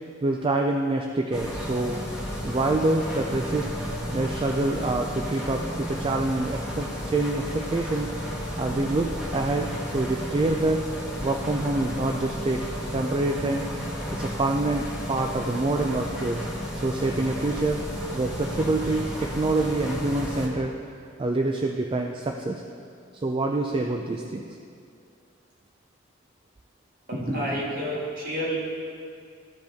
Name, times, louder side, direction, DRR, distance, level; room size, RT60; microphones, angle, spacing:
voice 1, 0.2-2.0 2.4-3.7 4.1-8.1 8.6-10.8 11.2-12.6 12.9-13.6 14.1-16.4 16.8-17.8 18.1-20.7 21.2-22.6 23.2-24.4, right 2 dB, 25° right, 2 dB, 0.4 m, -26 dB
sound 1, 1.3-20.5, equal, 5° right, 1.4 m, -33 dB
voice 2, 27.1-28.6, equal, 45° right, -4 dB, 1.9 m, -29 dB
14.0 x 5.2 x 3.5 m, 2.4 s
head